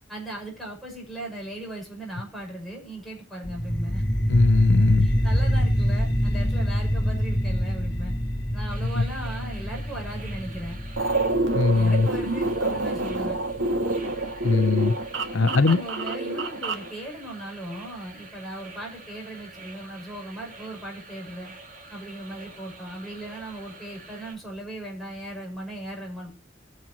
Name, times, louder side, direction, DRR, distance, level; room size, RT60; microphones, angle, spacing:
voice 1, 0.1-4.0 5.0-8.1 8.5-10.8 11.7-13.4 15.4-21.5 21.9-26.3, right 1 dB, ahead, 6.5 m, -37 dB
sound 1, 3.4-14.5, equal, 55° left, 2.5 m, -26 dB
voice 2, 4.3-5.1 9.0-9.1 11.5-12.1 14.4-14.9 15.3-15.8, left 3 dB, 90° left, 0.7 m, -20 dB
sound 2, 8.7-24.3, right 3 dB, 45° right, 5.5 m, -47 dB
sound 3, 11.0-16.9, right 2 dB, 80° right, 1.9 m, -27 dB
21.0 x 7.6 x 3.0 m
head